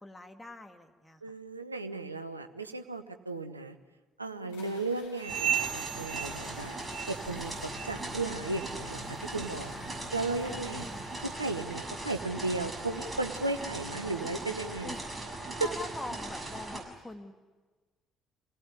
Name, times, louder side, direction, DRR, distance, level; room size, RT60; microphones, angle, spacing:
voice 1, 0.0-1.2 4.4-4.8 9.7-10.0 10.4-11.1 13.7-14.4 14.8-15.1 15.6-17.3, left 2 dB, 10° left, 4 dB, 2.3 m, -45 dB
voice 2, 1.2-3.8 4.2-6.8 7.1-9.7 10.1-10.8 11.2-14.9 15.6-15.7, right 3 dB, 90° right, 8 dB, 0.9 m, -35 dB
sound 1, 4.5-14.7, left 3 dB, 70° left, 3.8 m, -52 dB
sound 2, 5.2-7.4 7.7-8.1 8.5-8.8 9.4-9.5 10.2-10.3 11.0-11.1, right 8 dB, 70° right, 1.3 m, -35 dB
sound 3, 5.3-16.8, right 2 dB, 15° right, 6.8 m, -39 dB
27.0 x 18.0 x 9.7 m, 1.3 s
figure-of-eight pair, 50°, 0 cm